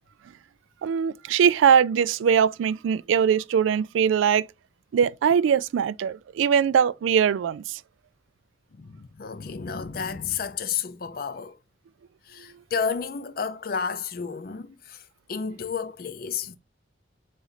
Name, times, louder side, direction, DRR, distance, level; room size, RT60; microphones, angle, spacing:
voice 1, 0.8-4.5 4.9-7.8, right 7 dB, 85° right, 0.3 m, -21 dB
voice 2, 8.7-11.6 12.3-16.6, left 6 dB, 50° left, 0.5 m, -31 dB
4.0 x 3.1 x 3.9 m
head